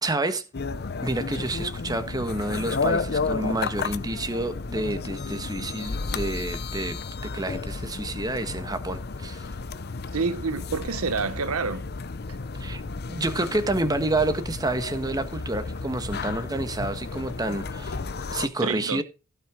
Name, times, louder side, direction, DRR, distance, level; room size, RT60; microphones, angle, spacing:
voice 1, 0.0-0.4 1.0-7.0 7.3-9.4 12.6-12.8 13.1-18.0 18.3-19.0, right 2 dB, 15° right, 1.3 m, -29 dB
sound 1, 0.5-18.5, left 4 dB, 45° left, 0.7 m, -32 dB
voice 2, 10.1-11.8 18.6-19.0, right 4 dB, 75° right, 0.8 m, -28 dB
16.0 x 5.9 x 5.0 m
head